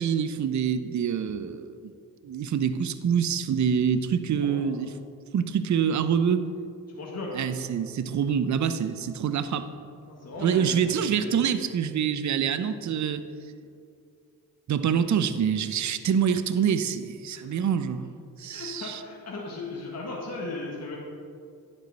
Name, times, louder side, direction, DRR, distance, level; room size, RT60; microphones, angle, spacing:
voice 1, 0.0-1.8 2.2-4.9 5.3-6.5 7.3-9.7 10.4-13.2 14.7-18.1 18.4-19.0, right 7 dB, 45° right, 11 dB, 0.6 m, -26 dB
voice 2, 4.4-4.8 6.9-7.4 10.1-11.4 17.3-17.6 18.5-21.0, left 2 dB, 40° left, -3 dB, 1.6 m, -37 dB
10.0 x 5.5 x 4.0 m, 2.4 s
supercardioid pair, 50°, 40 cm